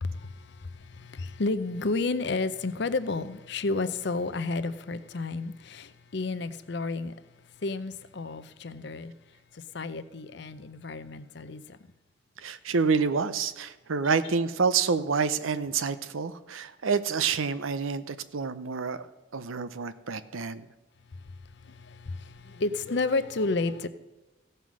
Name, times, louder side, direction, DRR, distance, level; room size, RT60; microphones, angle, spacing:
voice 1, 0.0-7.1 7.6-9.1 9.5-11.8 21.4-23.9, left 3 dB, 60° left, 0.6 m, -31 dB
voice 2, 12.4-19.1 19.3-20.7, right 5 dB, 90° right, 0.7 m, -28 dB
15.5 x 5.5 x 6.2 m
head